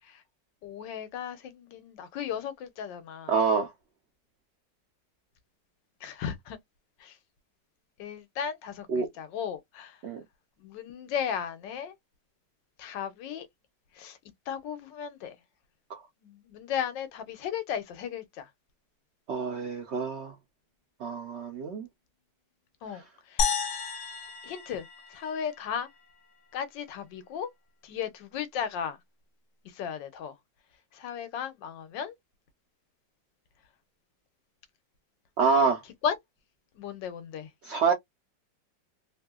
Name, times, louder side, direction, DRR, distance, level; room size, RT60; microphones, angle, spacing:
voice 1, 0.6-3.3 6.0-6.6 7.0-7.2 8.0-10.0 10.6-11.9 12.8-13.5 13.9-14.2 14.5-15.4 16.2-18.5 22.8-23.5 24.4-25.9 26.5-27.5 27.8-29.0 29.6-30.3 30.9-32.1 36.0-36.2 36.8-37.5, left 8 dB, 80° left, 1.4 m, -35 dB
voice 2, 3.3-3.7 8.9-9.1 10.0-10.2 15.9-16.0 19.3-20.3 21.0-21.9 35.4-35.8 37.6-37.9, right 5 dB, 60° right, 0.7 m, -26 dB
sound 1, 23.4-25.8, left 5 dB, 55° left, 0.9 m, -32 dB
3.2 x 2.7 x 2.3 m
omnidirectional pair, 2.0 m